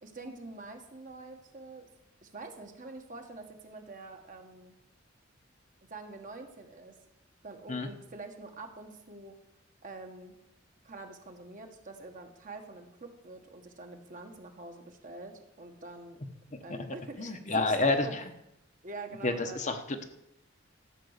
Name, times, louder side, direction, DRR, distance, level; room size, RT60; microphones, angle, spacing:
voice 1, 0.0-1.9 2.2-4.7 5.9-7.0 7.4-9.3 9.8-10.4 10.8-16.2 16.6-18.1 18.8-19.7, right 3 dB, 40° right, 4 dB, 1.5 m, -45 dB
voice 2, 17.2-18.2 19.2-20.0, left 2 dB, 40° left, 6 dB, 1.0 m, -29 dB
13.5 x 6.2 x 8.1 m, 0.84 s
head